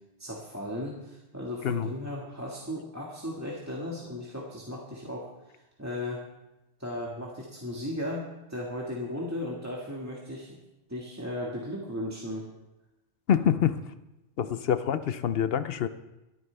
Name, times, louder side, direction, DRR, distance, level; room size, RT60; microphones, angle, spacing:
voice 1, 0.2-6.2 6.8-10.5 10.9-12.5 14.4-14.5, left 1 dB, 15° right, -4 dB, 1.8 m, -36 dB
voice 2, 13.3-13.8 14.4-15.9, left 9 dB, 60° left, 12 dB, 0.8 m, -26 dB
23.5 x 9.3 x 3.4 m, 0.96 s
omnidirectional pair, 1.3 m